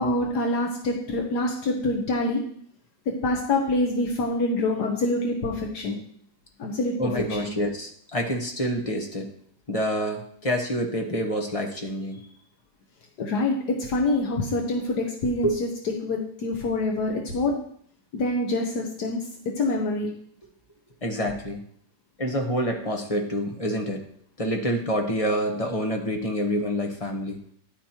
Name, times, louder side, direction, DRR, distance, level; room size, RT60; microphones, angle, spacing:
voice 1, 0.0-2.4 3.1-6.0 6.6-7.0 7.3-7.5 13.2-17.6 18.1-19.2 19.6-20.1, left 2 dB, 75° left, 1 dB, 1.6 m, -26 dB
voice 2, 7.0-9.3 9.7-12.2 15.4-15.6 21.0-21.6 22.2-24.0 24.4-27.4, equal, 25° left, 2 dB, 1.0 m, -27 dB
10.5 x 9.2 x 2.9 m, 0.62 s
omnidirectional pair, 1.8 m